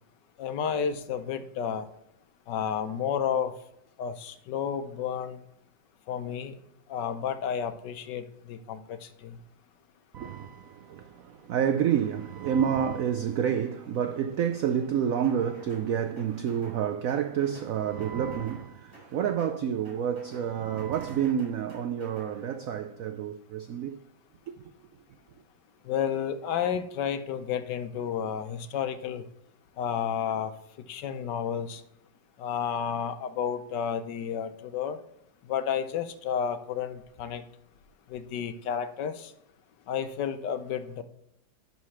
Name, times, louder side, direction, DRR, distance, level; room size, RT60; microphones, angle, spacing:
voice 1, 0.4-1.9 2.5-3.5 4.0-5.4 6.1-6.5 6.9-8.2 8.5-9.4 25.9-29.2 29.8-30.5 30.9-31.8 32.4-35.0 35.5-37.4 38.1-39.3 39.9-41.0, left 8 dB, 70° left, 1.3 m, -31 dB
voice 2, 10.1-24.0 26.5-26.7, right 8 dB, 85° right, 0.7 m, -29 dB
sound 1, 15.2-15.9 16.2-16.8 17.1-17.7 18.0-18.6 18.9-19.6 19.8-20.5 20.8-22.3, equal, 30° right, 3.5 m, -52 dB
11.0 x 4.2 x 5.8 m
omnidirectional pair, 2.1 m